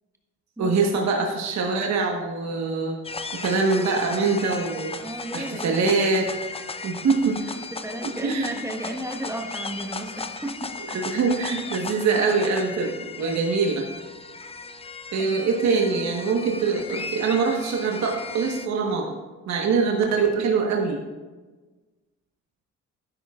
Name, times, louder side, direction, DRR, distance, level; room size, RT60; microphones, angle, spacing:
voice 1, 0.6-3.0 3.4-5.0 5.3-6.3 6.8-7.4 8.2-8.6 10.9-13.8 15.1-19.2 19.5-21.0, right 4 dB, 65° right, 0 dB, 1.4 m, -23 dB
sound 1, 3.0-18.7, left 4 dB, 20° left, 0.6 m, -36 dB
voice 2, 5.0-5.9 7.4-11.2 15.2-15.4, right 1 dB, 10° right, 2 dB, 1.4 m, -34 dB
12.0 x 10.0 x 2.5 m, 1.3 s
cardioid pair, 90°, 30 cm